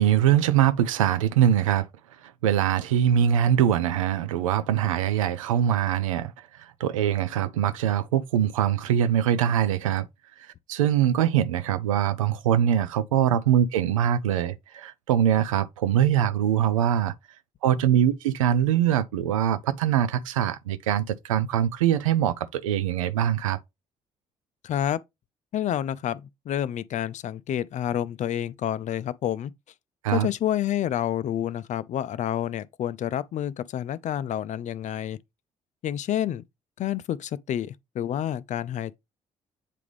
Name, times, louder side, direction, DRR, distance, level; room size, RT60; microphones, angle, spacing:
voice 1, 0.0-1.9 2.4-6.3 6.8-10.1 10.7-17.1 17.6-23.6 30.0-30.3, right 10 dB, 80° right, 0.4 m, -23 dB
voice 2, 24.6-25.0 25.5-29.5 30.1-35.2 35.8-36.4 36.8-39.0, left 11 dB, 45° left, 0.5 m, -29 dB
8.2 x 3.5 x 3.3 m
figure-of-eight pair, 45°, 17 cm